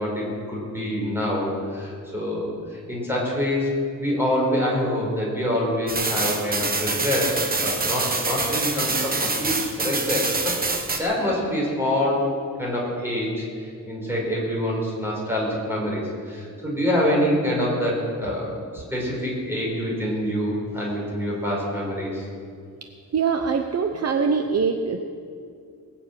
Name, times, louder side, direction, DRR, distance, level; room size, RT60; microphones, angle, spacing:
voice 1, 0.0-3.7 4.0-10.6 10.9-12.3 12.6-22.2, left 1 dB, 5° right, -4 dB, 5.0 m, -26 dB
sound 1, 5.9-11.0, right 3 dB, 25° right, 1.1 m, -25 dB
voice 2, 23.1-25.0, right 5 dB, 45° right, 6 dB, 0.8 m, -23 dB
20.5 x 7.4 x 8.8 m, 2.4 s
wide cardioid pair, 170°, 34 cm